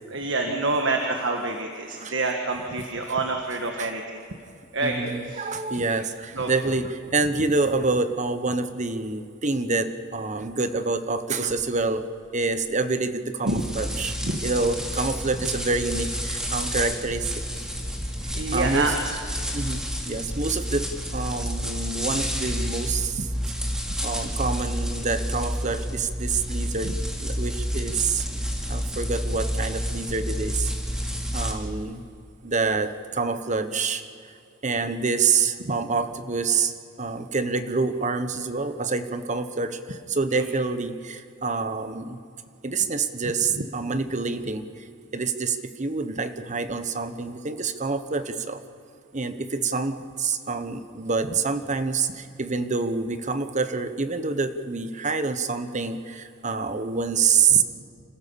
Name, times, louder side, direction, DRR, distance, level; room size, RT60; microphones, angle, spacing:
voice 1, 0.1-4.2 4.7-5.0 5.3-5.5 6.3-6.5 13.4-13.6 14.2-14.4 18.2-18.9 26.8-26.9 35.7-35.8 40.3-40.5, right 3 dB, 70° right, 3 dB, 1.6 m, -27 dB
voice 2, 4.8-12.0 12.3-14.2 14.4-17.6 18.5-18.9 19.5-23.3 24.0-28.3 28.7-30.7 31.3-32.0 32.4-34.0 34.6-42.2 42.6-44.9 45.1-48.6 49.1-57.6, right 4 dB, 40° right, 10 dB, 1.1 m, -27 dB
sound 1, 13.5-31.5, equal, 5° right, 2.4 m, -30 dB
26.5 x 15.5 x 7.0 m, 2.4 s
head